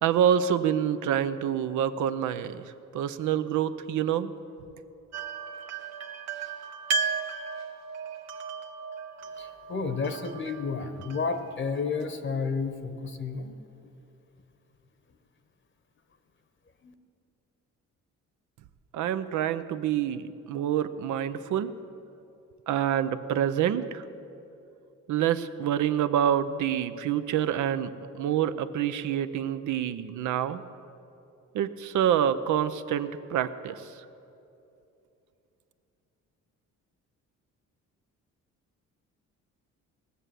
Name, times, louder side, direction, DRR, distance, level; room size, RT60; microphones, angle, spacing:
voice 1, 0.0-4.3 18.9-21.7 22.7-24.0 25.1-30.6 31.5-34.0, right 9 dB, 75° right, 12 dB, 0.7 m, -27 dB
sound 1, 5.1-12.0, right 5 dB, 60° right, 1.0 m, -35 dB
voice 2, 9.4-13.6 16.8-16.9, left 4 dB, 40° left, 9 dB, 0.9 m, -31 dB
18.5 x 6.8 x 7.6 m, 2.8 s
cardioid pair, 90°, 30 cm